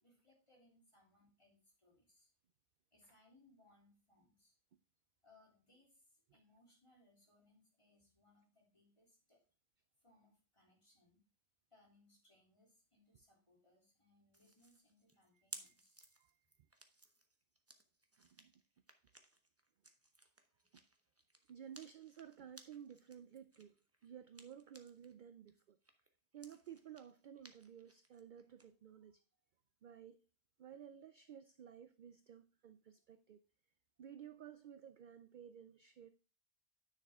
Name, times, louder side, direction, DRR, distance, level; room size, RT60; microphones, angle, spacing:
voice 1, 0.0-2.3 2.9-4.6 5.2-9.4 10.0-11.2 11.7-16.0, left 2 dB, 25° left, 3.0 m, -71 dB
sound 1, 14.3-25.1 25.5-28.7, right 2 dB, 15° right, 0.8 m, -60 dB
voice 2, 15.3-15.7 16.1-16.4 18.2-18.5 20.7-20.8 21.5-23.7 24.0-25.8 26.3-29.2 29.8-30.2 30.6-33.4 34.0-36.1, right 9 dB, 60° right, 0.5 m, -55 dB
9.9 x 6.5 x 3.6 m
omnidirectional pair, 1.2 m